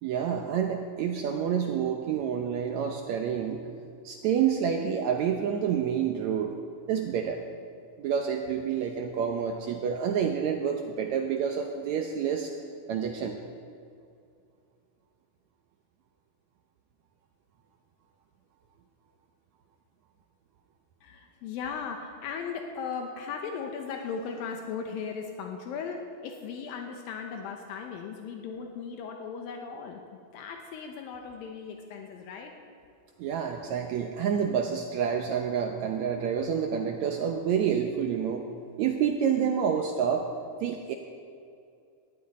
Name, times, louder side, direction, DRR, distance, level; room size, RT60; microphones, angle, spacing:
voice 1, 0.0-3.6 4.0-6.5 6.9-7.4 8.0-12.5 12.9-13.4 33.2-38.4 38.8-40.3 40.6-40.9, right 7 dB, 75° right, 3 dB, 1.7 m, -28 dB
voice 2, 21.0-30.0 30.3-32.5, left 6 dB, 80° left, 3 dB, 2.7 m, -37 dB
19.0 x 13.0 x 4.2 m, 2.4 s
omnidirectional pair, 4.1 m